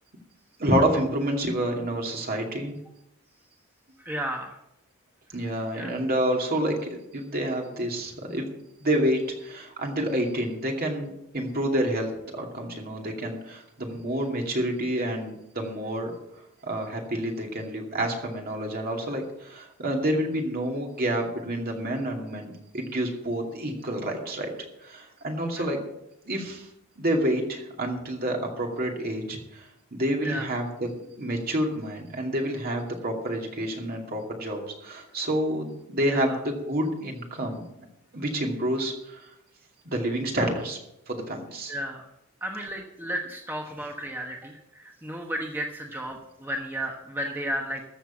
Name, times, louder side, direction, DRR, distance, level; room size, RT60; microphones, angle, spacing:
voice 1, 0.6-2.7 5.3-8.5 8.8-16.1 16.6-24.5 24.8-25.8 26.2-26.7 27.0-37.6 38.1-39.3 39.8-40.8 41.1-41.7, right 1 dB, 40° right, 1 dB, 2.5 m, -28 dB
voice 2, 4.0-4.5 5.7-6.0 25.6-25.7 30.2-30.5 36.1-36.4 41.7-42.0 42.4-47.9, equal, 10° right, 1 dB, 1.1 m, -33 dB
14.0 x 6.7 x 7.3 m, 0.83 s
head